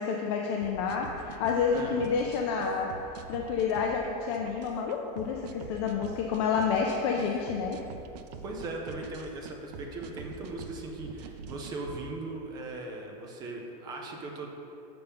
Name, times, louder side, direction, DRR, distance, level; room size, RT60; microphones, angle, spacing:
voice 1, 0.0-2.9 3.3-7.8, left 6 dB, 45° left, 1 dB, 0.4 m, -29 dB
sound 1, 0.6-12.0, right 5 dB, 85° right, 0.5 m, -45 dB
voice 2, 1.7-2.1 8.4-14.5, right 2 dB, 20° right, 1 dB, 0.5 m, -39 dB
6.8 x 5.8 x 3.5 m, 2.8 s
supercardioid pair, 175°, 21 cm